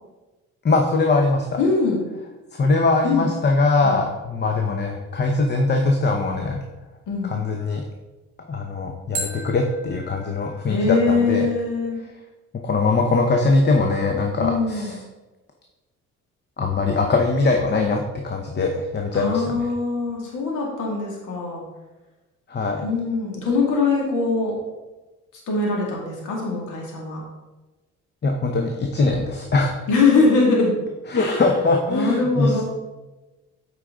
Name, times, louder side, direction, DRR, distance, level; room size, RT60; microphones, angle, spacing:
voice 1, 0.6-1.5 2.5-6.6 7.2-7.8 8.5-11.5 12.5-15.0 16.6-19.5 22.5-22.8 28.2-29.8 31.1-32.6, left 3 dB, 35° left, 2 dB, 0.8 m, -21 dB
voice 2, 1.6-2.1 3.0-3.2 3.8-4.0 7.1-7.4 10.7-12.0 14.4-15.0 19.1-21.6 22.8-24.5 25.5-27.2 29.9-30.7 31.1-31.4 31.9-32.6, left 4 dB, 80° left, -2 dB, 2.2 m, -22 dB
sound 1, 2.0-2.1 9.1-12.1, right 2 dB, 25° right, 2.6 m, -38 dB
8.3 x 4.9 x 3.8 m, 1.1 s
cardioid pair, 90°, 30 cm